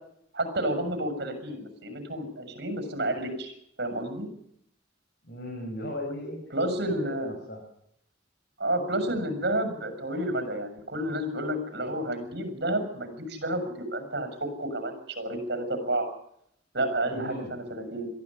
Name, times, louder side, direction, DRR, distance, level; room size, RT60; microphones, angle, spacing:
voice 1, 0.3-4.3 6.5-7.4 8.6-16.1 16.7-18.1, right 1 dB, 60° right, 8 dB, 6.8 m, -30 dB
voice 2, 5.2-6.4 7.0-7.6 17.1-17.6, left 1 dB, 60° left, 0 dB, 5.6 m, -37 dB
22.5 x 14.0 x 9.8 m, 0.72 s
head